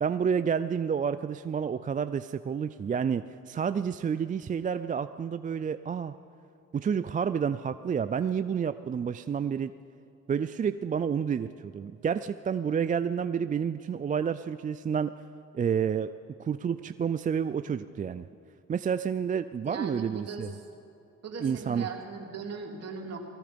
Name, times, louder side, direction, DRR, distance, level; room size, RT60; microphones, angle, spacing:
voice 1, 0.0-6.1 6.7-9.7 10.3-15.1 15.5-16.1 16.4-18.3 18.7-20.5 21.4-21.9, right 7 dB, 25° right, 12 dB, 0.4 m, -29 dB
voice 2, 19.6-20.6 21.2-23.2, right 5 dB, 55° right, 1 dB, 2.7 m, -38 dB
19.5 x 14.0 x 5.2 m, 2.8 s
cardioid pair, 90°, 30 cm